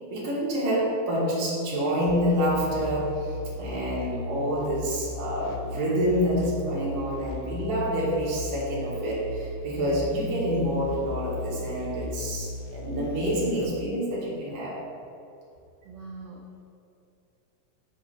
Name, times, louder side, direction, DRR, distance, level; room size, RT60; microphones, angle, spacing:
voice 1, 0.1-14.8, equal, 55° right, -6 dB, 2.5 m, -27 dB
sound 1, 2.1-13.7, left 2 dB, 80° left, 1.4 m, -37 dB
voice 2, 15.8-16.6, right 2 dB, 80° right, -2 dB, 1.2 m, -43 dB
6.4 x 4.9 x 4.1 m, 2.7 s
omnidirectional pair, 3.4 m